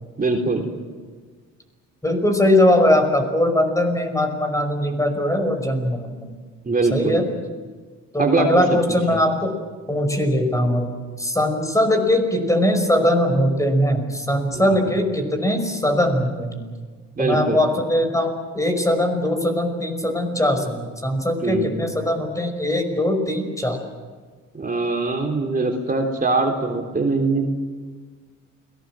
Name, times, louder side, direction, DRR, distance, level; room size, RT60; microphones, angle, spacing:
voice 1, 0.2-0.7 6.7-7.2 8.2-8.8 9.1-9.2 14.5-14.8 17.2-17.6 21.4-21.8 24.5-27.6, right 3 dB, 30° right, 2 dB, 3.5 m, -22 dB
voice 2, 2.0-6.3 6.9-7.3 8.1-9.5 9.9-10.9 11.2-16.6 17.2-23.8, left 1 dB, 10° left, 5 dB, 5.5 m, -20 dB
29.5 x 19.5 x 7.6 m, 1.5 s
cardioid pair, 90°, 30 cm